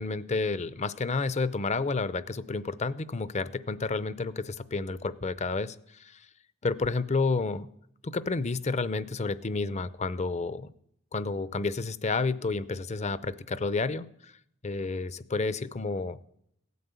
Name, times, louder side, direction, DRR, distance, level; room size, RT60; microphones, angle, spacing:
voice 1, 0.0-6.2 6.6-7.7 8.0-10.7 11.1-14.3 14.6-16.2, left 3 dB, 30° left, 16 dB, 0.6 m, -30 dB
16.5 x 9.5 x 8.2 m, 0.72 s
head